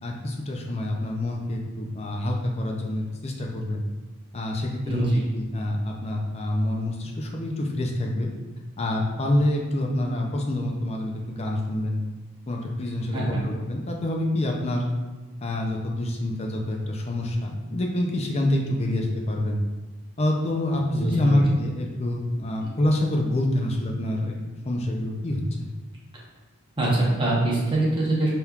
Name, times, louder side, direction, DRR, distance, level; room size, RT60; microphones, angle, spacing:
voice 1, 0.0-3.8 4.3-8.3 8.8-12.0 12.5-14.8 15.4-19.6 20.2-24.4 24.7-25.7, left 1 dB, 30° left, 0 dB, 0.4 m, -26 dB
voice 2, 4.8-5.2 13.1-13.4 20.9-21.4 22.6-22.7 26.8-28.3, right 2 dB, 20° right, -5 dB, 0.9 m, -24 dB
4.3 x 3.5 x 2.3 m, 1.2 s
head